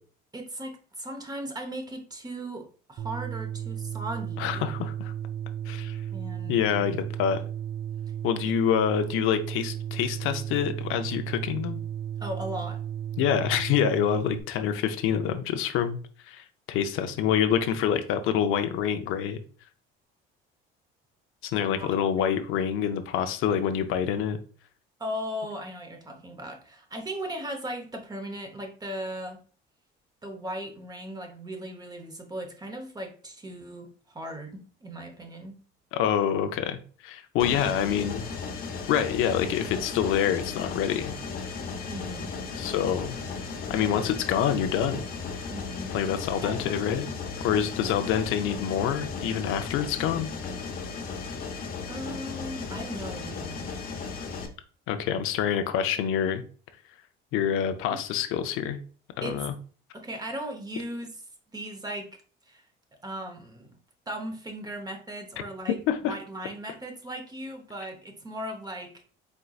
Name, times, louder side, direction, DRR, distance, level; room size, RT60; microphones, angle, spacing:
voice 1, 0.3-4.7 6.1-6.9 8.4-8.5 12.2-12.8 21.6-22.3 25.0-29.4 30.2-35.5 41.9-42.3 43.7-44.1 45.5-45.9 46.4-47.1 47.8-48.0 51.9-53.7 57.9-58.0 59.2-59.4 59.9-61.2 61.5-62.1 62.5-62.6 63.0-63.8 64.1-65.8 66.0-69.0, right 1 dB, 20° right, 4 dB, 0.9 m, -37 dB
sound 1, 3.0-14.4, right 9 dB, 50° right, 0.4 m, -34 dB
voice 2, 4.4-5.1 5.7-6.0 6.5-7.4 8.2-11.8 13.2-16.0 16.3-19.4 21.4-24.4 35.9-38.3 38.9-41.1 42.6-43.2 43.7-45.0 45.9-47.1 47.4-50.3 54.9-56.4 57.3-58.8 59.2-59.5 65.9-66.2, left 9 dB, 75° left, 8 dB, 0.5 m, -26 dB
Mechanisms, 37.4-54.5, left 5 dB, 45° left, 0.9 m, -36 dB
4.4 x 3.7 x 2.3 m, 0.40 s
cardioid pair, 105°, 21 cm